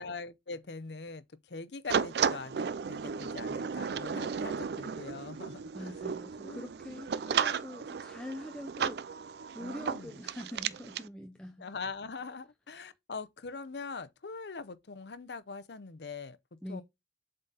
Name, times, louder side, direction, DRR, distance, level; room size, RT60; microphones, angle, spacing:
voice 1, 0.0-5.9 6.4-6.7 9.6-10.1 11.6-16.8, left 4 dB, 75° left, 0.7 m, -43 dB
sound 1, 1.9-11.1, right 6 dB, 65° right, 0.4 m, -34 dB
voice 2, 5.7-9.0 9.5-11.7 16.6-16.8, left 1 dB, 5° left, 0.6 m, -44 dB
7.5 x 3.9 x 4.0 m
head